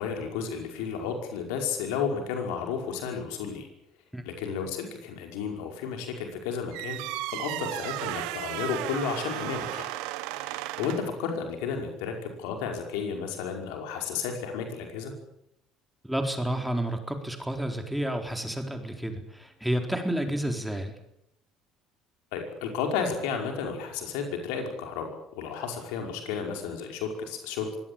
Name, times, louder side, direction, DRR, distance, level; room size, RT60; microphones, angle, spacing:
voice 1, 0.0-3.7 4.3-7.0 7.3-9.9 10.4-15.1 22.3-27.8, left 6 dB, 65° left, 3 dB, 5.4 m, -32 dB
sound 1, 6.7-11.2, right 17 dB, 65° right, 1.3 m, -34 dB
voice 2, 16.0-20.9, right 1 dB, 5° right, 5 dB, 4.1 m, -30 dB
24.0 x 17.5 x 8.7 m, 0.78 s
figure-of-eight pair, 60°, 0 cm